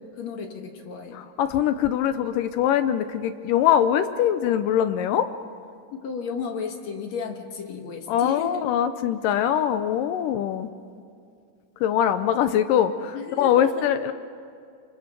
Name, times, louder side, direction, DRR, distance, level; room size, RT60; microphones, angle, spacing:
voice 1, 0.2-1.2 5.9-8.5 10.0-10.2 13.1-13.9, left 5 dB, 55° left, 4 dB, 2.4 m, -34 dB
voice 2, 1.1-5.3 8.1-10.7 11.8-14.1, left 10 dB, 75° left, 10 dB, 2.2 m, -22 dB
25.5 x 25.0 x 6.9 m, 2.4 s
omnidirectional pair, 4.2 m